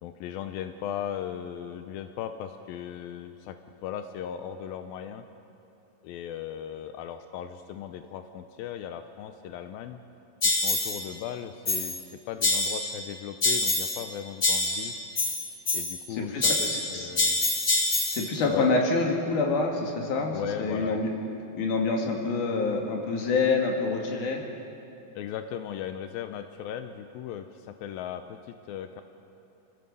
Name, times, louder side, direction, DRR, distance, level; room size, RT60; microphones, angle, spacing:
voice 1, 0.0-3.6 3.8-5.2 6.0-10.0 10.4-14.9 15.7-17.4 18.5-18.7 20.3-21.0 25.2-29.0, left 9 dB, 90° left, 8 dB, 2.5 m, -37 dB
sound 1, 10.4-11.0 11.6-12.0 12.4-13.0 13.4-14.1 14.4-16.1 16.4-18.3, left 2 dB, 45° left, 1.2 m, -26 dB
voice 2, 16.1-17.1 18.0-21.1 21.5-24.4, left 3 dB, 60° left, 1 dB, 3.6 m, -27 dB
28.5 x 15.0 x 6.9 m, 3.0 s
omnidirectional pair, 4.2 m